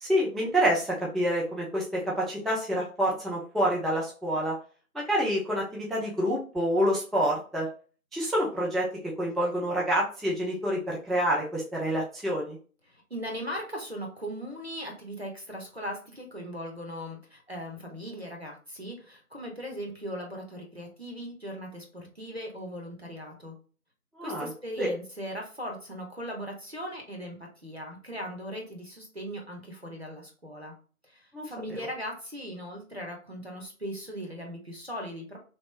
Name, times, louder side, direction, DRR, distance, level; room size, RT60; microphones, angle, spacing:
voice 1, 0.0-4.6 4.9-7.7 8.1-8.9 9.2-12.6 24.2-24.5 24.8-24.9 31.3-31.4 31.7-31.8, equal, ahead, -4 dB, 0.5 m, -27 dB
voice 2, 12.9-23.5 24.2-30.7 31.0-35.4, equal, 45° right, -1 dB, 0.9 m, -39 dB
3.0 x 2.5 x 3.2 m, 0.38 s
figure-of-eight pair, 175°, 44 cm